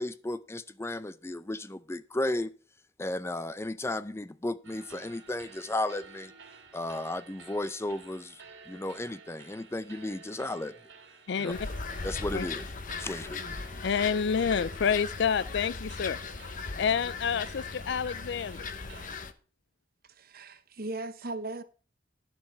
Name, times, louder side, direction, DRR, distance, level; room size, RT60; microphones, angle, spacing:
voice 1, 0.0-2.5 3.0-6.3 6.7-8.4 8.7-10.7 11.4-11.5 12.0-12.7 13.0-13.4, left 1 dB, 15° left, 0.5 m, -34 dB
sound 1, 4.6-19.1, right 4 dB, 80° right, 2.7 m, -52 dB
voice 2, 11.3-11.6 12.3-12.5 13.8-16.2 16.8-18.7, left 6 dB, 65° left, 0.4 m, -28 dB
sound 2, 11.5-19.3, left 4 dB, 45° left, 0.9 m, -38 dB
voice 3, 20.1-21.6, right 2 dB, 55° right, 0.9 m, -38 dB
11.5 x 7.5 x 4.7 m
head